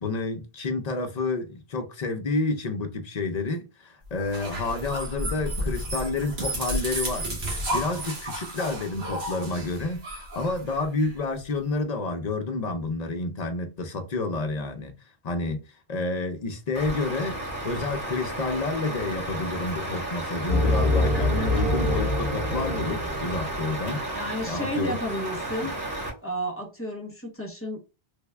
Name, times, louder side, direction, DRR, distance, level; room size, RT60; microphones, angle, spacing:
voice 1, 0.0-14.9 15.2-15.6 15.9-24.0 24.5-25.0, left 3 dB, 45° left, 0.6 m, -29 dB
sound 1, 4.2-11.1, right 1 dB, 80° right, 1.3 m, -32 dB
Truck, 16.7-26.1, right 1 dB, 50° right, 1.6 m, -33 dB
sound 2, 20.5-23.9, left 1 dB, 30° right, 0.8 m, -25 dB
voice 2, 24.1-25.8 26.2-27.8, equal, 15° left, 0.9 m, -32 dB
3.4 x 2.3 x 3.2 m
omnidirectional pair, 1.1 m